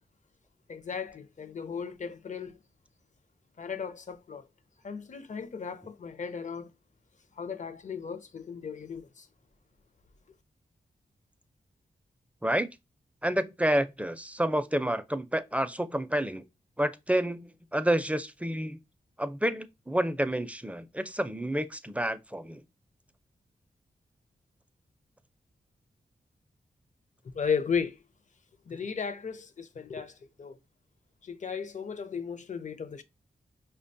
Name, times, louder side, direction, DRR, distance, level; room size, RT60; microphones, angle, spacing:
voice 1, 0.7-2.6 3.6-4.4 4.8-6.7 7.4-9.3 27.2-28.0 28.7-30.6 31.2-33.0, left 6 dB, 50° left, 0.6 m, -35 dB
voice 2, 13.2-16.4 16.8-18.8 19.2-22.6, right 1 dB, 10° right, 0.4 m, -29 dB
5.0 x 2.2 x 2.6 m
cardioid pair, 45°, 16 cm